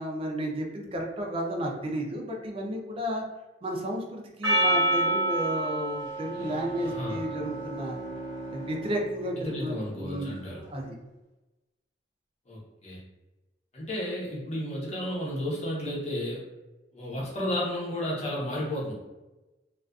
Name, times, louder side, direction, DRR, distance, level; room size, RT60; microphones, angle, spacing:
voice 1, 0.0-3.2 3.6-8.0 8.5-11.0, equal, 30° right, 1 dB, 0.4 m, -33 dB
Percussion, 4.4-9.0, right 1 dB, 85° right, 0.8 m, -29 dB
Bowed string instrument, 6.2-10.7, right 1 dB, 70° left, 0.6 m, -42 dB
voice 2, 6.8-7.2 9.4-10.6 12.5-13.0 13.7-16.4 16.9-18.9, left 1 dB, 35° left, -5 dB, 0.8 m, -32 dB
2.4 x 2.4 x 2.3 m, 1.1 s
head